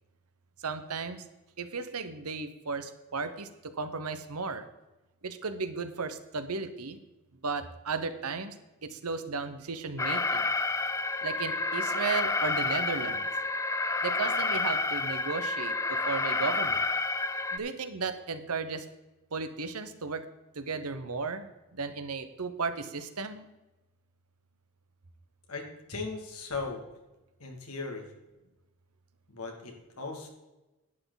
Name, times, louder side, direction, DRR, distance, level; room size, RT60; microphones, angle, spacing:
voice 1, 0.6-1.2 1.6-4.7 5.2-7.0 7.4-8.5 8.8-10.5 11.2-13.2 14.0-16.8 17.5-18.9 19.3-20.3 20.5-23.5, right 4 dB, 85° right, 10 dB, 1.0 m, -35 dB
Alarm, 10.0-17.6, left 3 dB, 15° left, 0.4 m, -29 dB
voice 2, 25.5-26.8 27.4-28.1 29.3-30.3, left 3 dB, 80° left, 1 dB, 2.4 m, -38 dB
11.0 x 9.4 x 4.0 m, 1.0 s
head